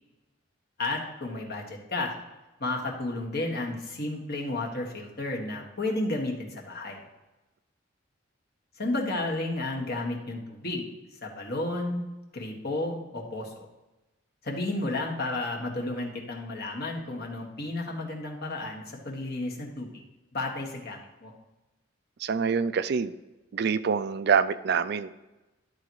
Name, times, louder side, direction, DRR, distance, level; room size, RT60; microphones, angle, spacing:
voice 1, 0.8-2.1 2.6-7.1 8.8-12.0 12.3-13.7 14.4-19.9 20.3-21.3, left 2 dB, 50° left, 0 dB, 1.6 m, -32 dB
voice 2, 22.2-23.1 23.5-25.1, right 6 dB, 55° right, 13 dB, 0.4 m, -25 dB
12.0 x 4.1 x 4.7 m, 1.1 s
head